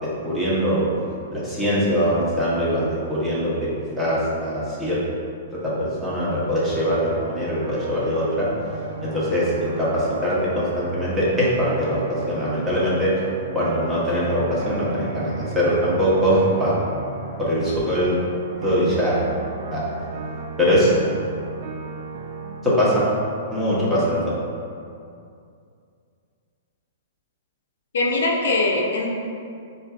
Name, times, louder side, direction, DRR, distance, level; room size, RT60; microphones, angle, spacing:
voice 1, 0.0-0.9 1.3-3.7 4.0-5.0 5.5-8.5 9.0-13.1 13.5-16.7 17.4-18.2 18.6-19.2 19.7-19.8 20.6-20.9 22.6-23.0 23.5-24.2, equal, 5° right, -9 dB, 1.0 m, -22 dB
sound 1, 6.7-22.6, right 4 dB, 55° right, 0.3 m, -35 dB
voice 2, 27.9-29.1, left 2 dB, 75° left, 0 dB, 0.5 m, -21 dB
4.4 x 2.7 x 2.4 m, 2.4 s
hypercardioid pair, 125°, 0 cm